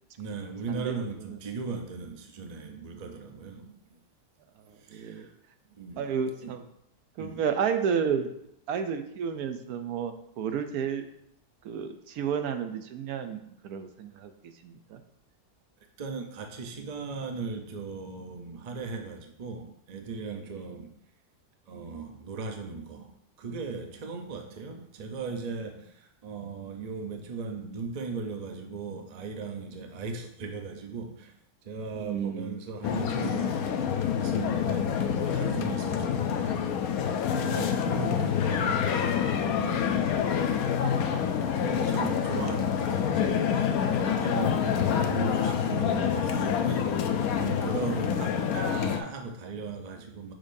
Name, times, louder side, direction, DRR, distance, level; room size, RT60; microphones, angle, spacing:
voice 1, 0.2-4.0 4.8-5.3 5.8-6.1 6.4-6.5 7.2-7.4 16.0-20.9 21.7-23.1 23.4-31.3 31.6-33.8 34.2-36.7 37.4-40.3 40.5-40.7 41.3-46.9 47.4-50.3, right 4 dB, 40° right, 4 dB, 0.6 m, -38 dB
voice 2, 4.7-5.3 6.0-6.6 7.2-8.3 8.7-11.1 11.6-15.0 31.9-32.6 38.1-38.3 44.5-44.8 48.1-48.2, right 7 dB, 80° right, 7 dB, 1.1 m, -32 dB
sound 1, 32.8-49.0, left 8 dB, 75° left, 1.1 m, -27 dB
6.5 x 6.1 x 2.7 m, 0.73 s
omnidirectional pair, 1.6 m